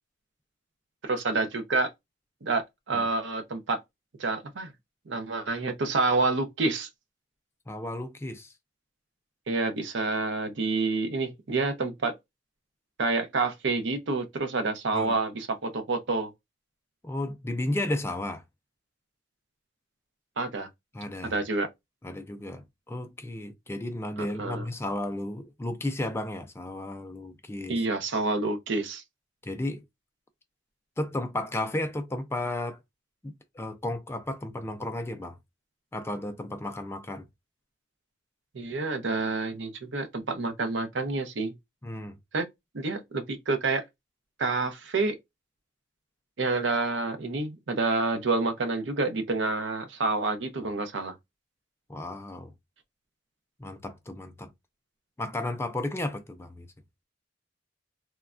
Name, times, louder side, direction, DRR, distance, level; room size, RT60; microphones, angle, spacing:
voice 1, 1.0-1.9 2.4-3.8 4.2-4.7 5.1-6.9 9.5-12.1 13.0-16.3 20.4-20.7 21.2-21.7 24.4-24.6 27.7-29.0 38.5-41.5 42.3-42.4 42.7-43.8 44.4-45.1 46.4-51.1, right 3 dB, 70° right, 0.6 m, -28 dB
voice 2, 7.7-8.5 14.9-15.2 17.0-18.4 20.9-21.4 22.0-27.8 29.4-29.8 31.0-32.8 33.2-35.4 35.9-37.3 41.8-42.2 51.9-52.5 53.6-54.5 55.2-56.7, left 1 dB, 15° left, 0.3 m, -33 dB
3.1 x 2.2 x 2.4 m
head